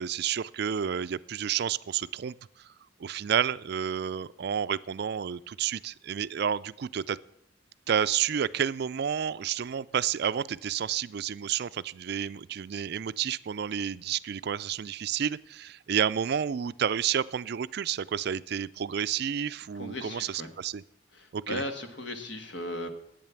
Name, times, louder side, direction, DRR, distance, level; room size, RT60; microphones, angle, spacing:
voice 1, 0.0-2.3 3.0-7.2 7.9-20.8 21.3-21.6, right 8 dB, 55° right, 16 dB, 0.4 m, -30 dB
voice 2, 19.7-20.5 21.1-22.9, left 1 dB, 65° left, 6 dB, 1.6 m, -37 dB
11.0 x 8.9 x 7.1 m, 0.74 s
head